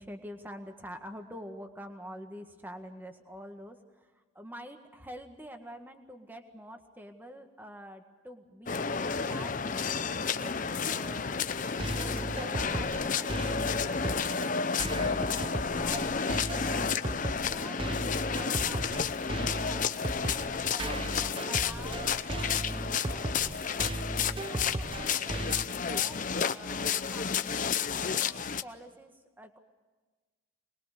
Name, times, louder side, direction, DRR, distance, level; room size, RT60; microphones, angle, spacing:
voice 1, 0.0-9.8 10.3-11.4 11.9-17.8 18.3-23.9 24.5-29.6, equal, 10° right, 5 dB, 1.7 m, -47 dB
sound 1, 8.7-28.6, left 6 dB, 40° left, 0.7 m, -31 dB
sound 2, 11.6-25.6, right 2 dB, 25° right, 0.6 m, -36 dB
23.5 x 21.5 x 6.8 m, 1.3 s
head